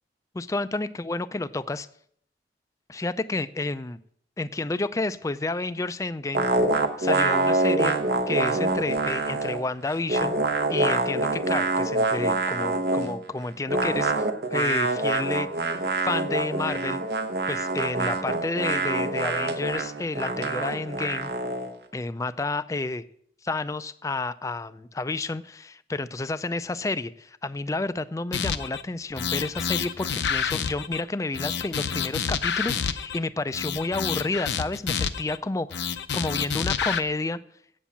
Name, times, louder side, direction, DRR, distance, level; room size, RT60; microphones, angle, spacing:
voice 1, 0.3-1.9 2.9-4.0 4.4-6.5 7.0-7.9 8.3-10.4 10.7-14.1 14.5-15.8 16.0-17.0 17.5-21.3 21.9-23.0 23.4-37.4, left 2 dB, 20° left, 14 dB, 0.3 m, -30 dB
sound 1, 6.4-9.6 9.9-13.2 13.7-21.7, right 2 dB, 65° right, 0.9 m, -25 dB
sound 2, 28.3-28.8 29.2-31.0 31.3-33.2 33.5-35.4 35.7-37.0, left 7 dB, 75° left, 0.6 m, -28 dB
8.4 x 7.1 x 7.1 m, 0.66 s
head